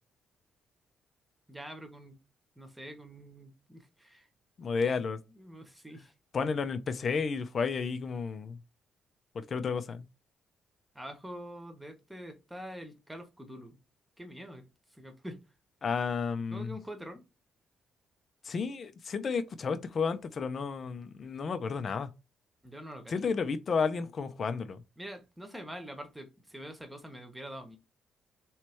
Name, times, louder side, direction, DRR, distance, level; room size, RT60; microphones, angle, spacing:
voice 1, 1.5-2.2 2.6-4.3 4.9-5.0 5.3-6.1 10.9-13.8 14.2-14.6 14.9-15.4 16.5-17.2 22.6-23.1 25.0-27.8, equal, 5° right, 1.1 m, -45 dB
voice 2, 4.6-5.2 6.3-8.6 9.5-10.0 15.8-16.7 18.5-22.1 23.1-24.8, left 5 dB, 45° left, 0.6 m, -32 dB
3.3 x 3.1 x 4.4 m
cardioid pair, 90°, 0 cm